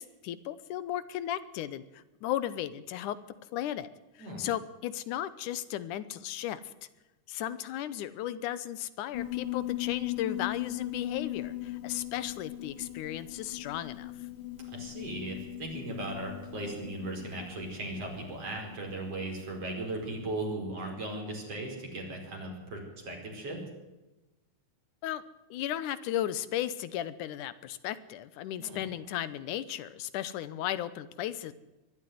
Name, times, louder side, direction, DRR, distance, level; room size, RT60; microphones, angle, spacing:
voice 1, 0.0-3.2 3.5-3.9 4.2-6.7 7.3-14.1 25.0-25.2 25.5-31.5, left 12 dB, 85° left, 15 dB, 2.4 m, -35 dB
Piano, 9.1-19.9, left 16 dB, 55° left, 1.6 m, -39 dB
voice 2, 14.7-23.6 28.6-28.9, right 2 dB, 50° right, 1 dB, 5.9 m, -37 dB
22.5 x 12.5 x 9.4 m, 1.1 s
omnidirectional pair, 3.5 m